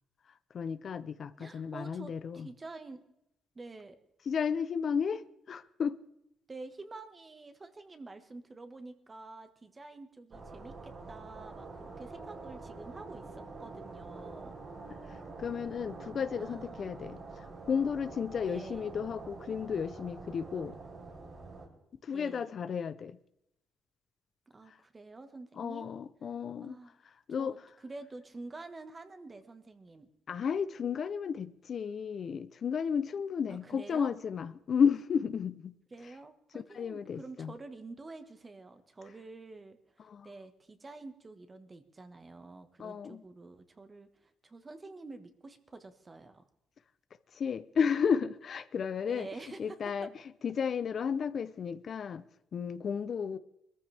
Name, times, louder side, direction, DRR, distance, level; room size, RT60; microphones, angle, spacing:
voice 1, 0.5-2.5 4.3-6.0 15.1-20.8 22.0-23.2 24.7-24.8 25.6-26.8 27.0-27.6 30.3-35.7 36.7-37.5 40.0-40.3 42.8-43.2 47.3-49.3 49.6-50.1 50.4-52.3 52.5-53.4, left 6 dB, 55° left, 0.6 m, -33 dB
voice 2, 1.4-3.0 3.5-4.0 6.5-14.5 16.4-16.8 18.5-18.8 22.1-22.5 24.5-25.9 26.6-26.9 27.4-27.6 27.8-30.1 33.5-34.1 35.9-46.4 49.1-50.1 53.3-53.4, right 3 dB, 25° right, 1.5 m, -48 dB
sound 1, 10.3-21.7, right 3 dB, 50° right, 4.1 m, -46 dB
21.5 x 14.0 x 3.5 m
cardioid pair, 90°, 0 cm